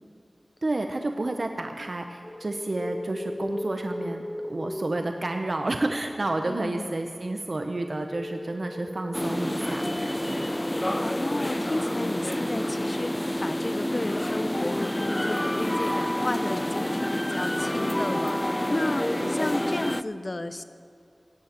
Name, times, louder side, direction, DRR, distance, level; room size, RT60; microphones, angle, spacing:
voice 1, 0.6-10.5 19.1-19.3, right 2 dB, 60° right, 5 dB, 0.9 m, -30 dB
sound 1, 2.2-16.4, left 1 dB, 35° left, 1.1 m, -40 dB
voice 2, 6.4-6.9 11.0-20.6, left 2 dB, 50° left, 11 dB, 0.7 m, -33 dB
sound 2, 9.1-20.0, left 1 dB, 20° left, 0.4 m, -28 dB
16.5 x 8.7 x 7.5 m, 2.4 s
wide cardioid pair, 50°, 0 cm